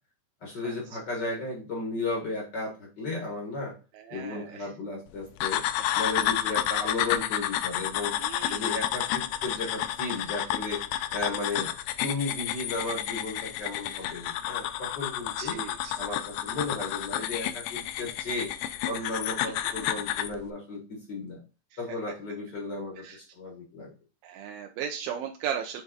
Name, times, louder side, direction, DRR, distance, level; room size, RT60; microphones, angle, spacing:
voice 1, 0.4-3.7 4.1-5.6 5.9-8.1 8.5-10.8 11.1-11.7 12.0-15.6 16.0-18.5 18.9-21.4 21.8-23.9, left 3 dB, 65° left, -1 dB, 1.0 m, -34 dB
voice 2, 4.1-4.7 8.2-8.6 15.4-15.9 23.0-23.2 24.2-25.8, right 8 dB, 80° right, 3 dB, 2.4 m, -36 dB
sound 1, 5.4-20.3, left 12 dB, 85° left, 2.4 m, -30 dB
7.5 x 3.6 x 3.9 m, 0.34 s
omnidirectional pair, 4.3 m